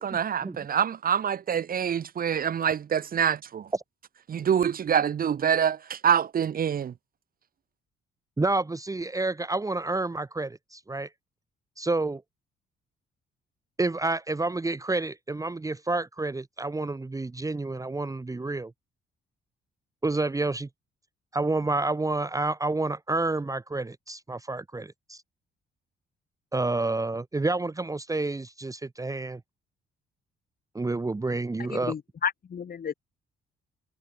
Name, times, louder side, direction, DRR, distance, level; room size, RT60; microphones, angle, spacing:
voice 1, 0.0-3.7 4.3-6.9, right 8 dB, 45° right, 0.9 m, -26 dB
voice 2, 8.4-11.1 11.8-12.2 13.8-18.7 20.0-20.7 21.3-25.2 26.5-29.4 30.7-31.9, right 2 dB, 15° right, 1.1 m, -29 dB
voice 3, 31.9-32.9, left 7 dB, 50° left, 3.8 m, -31 dB
cardioid pair, 90°, 20 cm